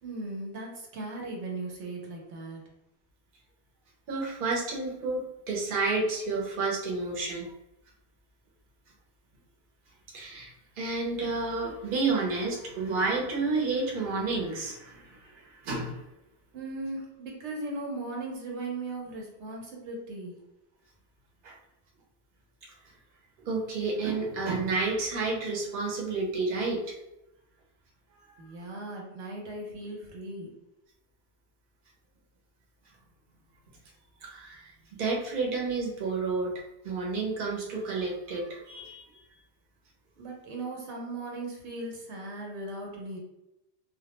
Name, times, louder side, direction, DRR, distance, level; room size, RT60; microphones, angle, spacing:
voice 1, 0.0-2.6 16.5-20.4 28.4-30.5 40.2-43.2, right 2 dB, 90° right, -1 dB, 1.0 m, -38 dB
voice 2, 4.1-7.5 10.1-16.0 21.4-21.5 23.4-26.9 28.3-28.4 34.2-34.7 35.0-36.5 36.8-39.0, right 3 dB, 55° right, -2 dB, 0.8 m, -30 dB
2.3 x 2.1 x 2.9 m, 0.89 s
omnidirectional pair, 1.1 m